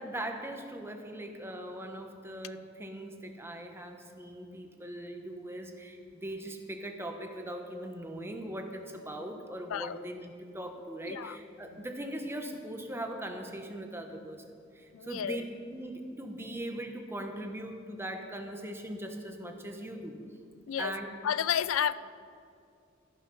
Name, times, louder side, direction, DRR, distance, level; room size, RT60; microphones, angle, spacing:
voice 1, 0.0-15.4 15.7-20.2 20.8-21.1, right 1 dB, 10° right, 4 dB, 1.1 m, -40 dB
voice 2, 9.7-10.0 11.1-11.4 14.9-15.4 20.7-20.9 21.2-21.9, left 9 dB, 80° left, 16 dB, 0.4 m, -31 dB
14.0 x 10.5 x 5.7 m, 2.4 s
head